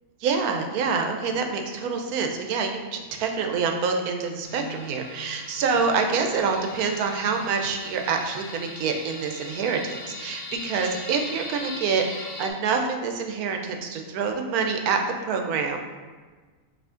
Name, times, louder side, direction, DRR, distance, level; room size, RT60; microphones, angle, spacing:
voice 1, 0.2-15.8, right 5 dB, 90° right, 4 dB, 1.1 m, -26 dB
sound 1, 4.4-12.5, left 2 dB, 75° left, 1.3 m, -40 dB
5.0 x 2.7 x 3.6 m, 1.4 s
omnidirectional pair, 1.5 m